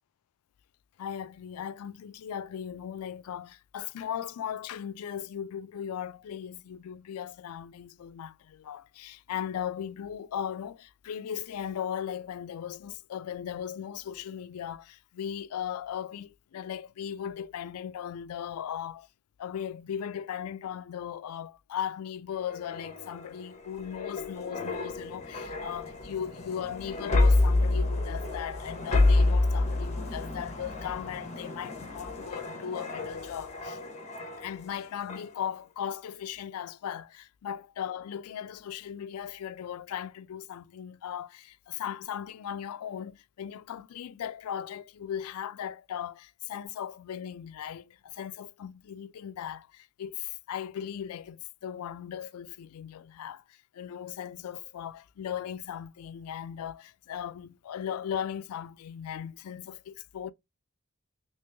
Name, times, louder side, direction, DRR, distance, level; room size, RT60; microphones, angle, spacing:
voice 1, 1.0-19.1 19.4-33.8 34.4-60.3, left 9 dB, 85° left, 0.3 m, -38 dB
sound 1, 22.4-34.7 35.1-35.3, left 2 dB, 30° left, 0.9 m, -29 dB
3.0 x 2.9 x 3.3 m
head